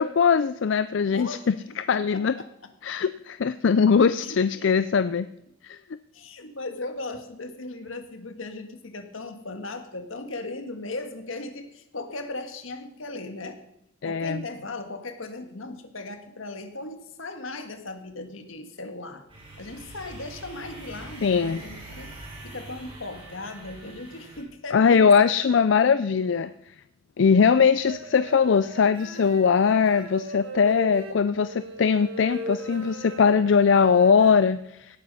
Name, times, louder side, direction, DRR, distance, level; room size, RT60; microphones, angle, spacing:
voice 1, 0.0-2.3 2.8-5.3 5.6-5.8 14.0-14.4 21.2-21.6 24.7-26.5 27.2-35.0, left 6 dB, 65° left, 13 dB, 0.4 m, -21 dB
voice 2, 1.1-1.5 1.9-2.5 2.9-3.0 4.2-4.7 6.1-13.6 14.0-19.2 19.6-22.1 22.4-25.0, left 2 dB, 85° left, 7 dB, 1.7 m, -37 dB
sound 1, 19.3-24.4, right 2 dB, 25° right, 5.2 m, -43 dB
sound 2, 27.8-34.3, right 1 dB, 75° right, 2.0 m, -38 dB
17.5 x 9.3 x 5.5 m, 0.81 s
head